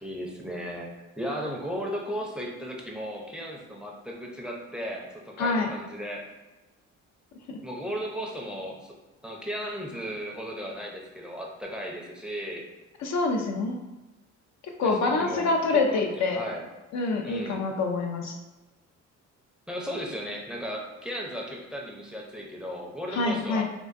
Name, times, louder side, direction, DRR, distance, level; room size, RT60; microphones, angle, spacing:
voice 1, 0.0-6.2 7.6-8.9 9.2-12.6 14.8-16.6 17.2-17.7 19.7-23.6, equal, 5° right, -1 dB, 0.5 m, -35 dB
voice 2, 5.4-5.7 7.5-7.6 13.0-13.8 14.6-16.4 16.9-18.4 23.1-23.6, left 3 dB, 65° left, 2 dB, 0.5 m, -26 dB
3.6 x 2.5 x 2.5 m, 1.1 s
cardioid pair, 90°, 30 cm